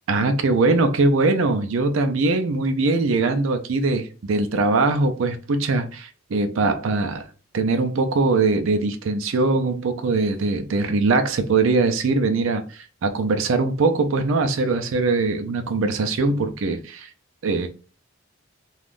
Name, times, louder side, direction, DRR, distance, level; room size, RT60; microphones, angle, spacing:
voice 1, 0.1-7.3 7.5-17.1 17.4-17.7, right 3 dB, 70° right, 0.4 m, -21 dB
2.5 x 2.3 x 3.4 m
head